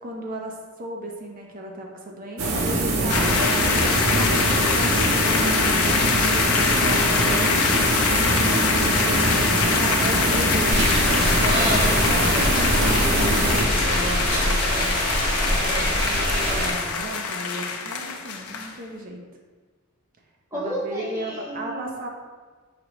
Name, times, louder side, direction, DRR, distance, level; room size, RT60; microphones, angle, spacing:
voice 1, 0.0-3.6 3.9-7.5 9.7-15.0 15.4-19.2 20.5-22.1, right 1 dB, 40° right, 1 dB, 0.6 m, -35 dB
sound 1, 2.4-14.0, right 2 dB, 85° right, 0.7 m, -23 dB
sound 2, 3.1-18.7, left 5 dB, 90° left, 0.5 m, -24 dB
voice 2, 8.3-9.8 20.5-21.9, equal, 15° right, -8 dB, 1.3 m, -34 dB
sound 3, 10.7-16.7, equal, 60° right, 1.1 m, -24 dB
4.9 x 2.9 x 3.0 m, 1.4 s
head